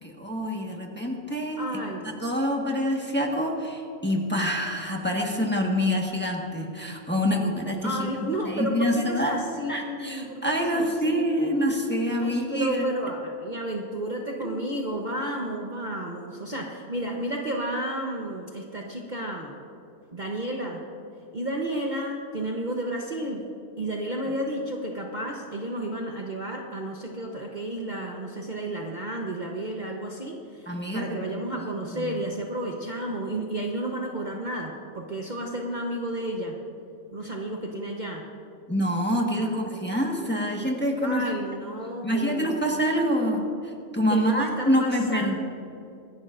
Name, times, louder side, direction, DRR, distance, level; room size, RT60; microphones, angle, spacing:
voice 1, 0.0-1.8 2.2-8.1 8.4-12.8 14.4-14.5 30.7-31.4 31.8-32.2 38.7-41.2 42.0-45.4, equal, 10° left, -1 dB, 1.3 m, -26 dB
voice 2, 1.6-2.2 7.8-11.7 12.2-19.5 20.1-20.8 21.3-23.5 23.8-36.6 37.1-38.2 39.4-39.8 40.1-40.6 41.0-42.9 44.1-45.4, right 1 dB, 35° right, 0 dB, 1.0 m, -32 dB
25.0 x 11.0 x 2.6 m, 2.6 s
omnidirectional pair, 1.4 m